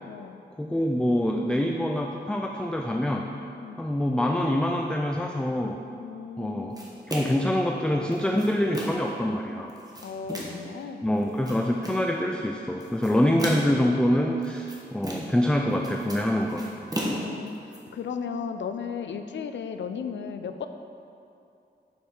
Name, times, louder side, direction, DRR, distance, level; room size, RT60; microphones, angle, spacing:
voice 1, 0.0-0.4 3.6-3.8 6.0-6.9 10.0-11.1 17.1-20.7, left 6 dB, 80° left, 8 dB, 0.4 m, -35 dB
voice 2, 0.6-3.3 3.8-5.8 6.4-6.7 7.1-9.7 11.0-16.7, left 1 dB, 5° left, 1 dB, 0.3 m, -25 dB
sound 1, 6.8-7.5 8.1-9.1 9.7-10.7 11.2-12.1 12.8-13.9 14.4-15.5 15.7-17.8, right 1 dB, 20° right, 1.1 m, -35 dB
6.6 x 5.2 x 4.4 m, 2.6 s
wide cardioid pair, 95°, 19 cm